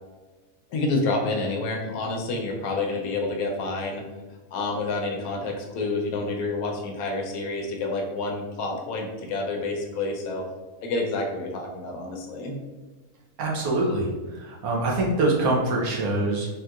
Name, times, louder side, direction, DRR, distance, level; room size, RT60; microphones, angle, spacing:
voice 1, 0.7-4.0 4.5-10.4 10.8-12.6, left 3 dB, 80° left, 1 dB, 1.0 m, -28 dB
voice 2, 13.4-14.1 14.4-16.5, right 2 dB, 75° right, -2 dB, 1.2 m, -24 dB
3.6 x 2.8 x 2.3 m, 1.2 s
omnidirectional pair, 1.6 m